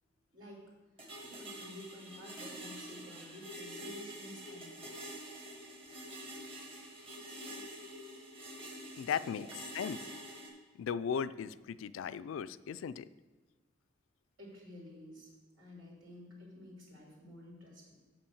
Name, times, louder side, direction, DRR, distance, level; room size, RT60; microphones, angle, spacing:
voice 1, 0.3-5.2 9.3-9.5 14.4-15.3 15.5-18.0, left 1 dB, 75° right, -3 dB, 3.1 m, -52 dB
sound 1, 1.0-10.5, right 1 dB, 30° right, 1.5 m, -47 dB
voice 2, 9.0-9.5 9.7-10.1 10.8-13.1, left 7 dB, 70° left, 15 dB, 0.3 m, -37 dB
7.1 x 5.6 x 7.0 m, 1.3 s
head